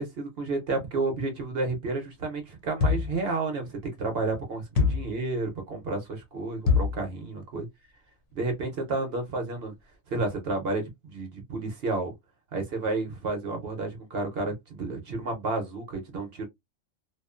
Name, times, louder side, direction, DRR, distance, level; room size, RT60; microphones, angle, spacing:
voice 1, 0.0-7.7 8.3-9.7 10.1-12.1 12.5-16.5, right 3 dB, 55° right, 0.9 m, -31 dB
sound 1, 2.8-3.2 4.8-5.2 6.7-7.0, left 5 dB, 65° left, 0.8 m, -24 dB
2.5 x 2.4 x 2.4 m
omnidirectional pair, 1.4 m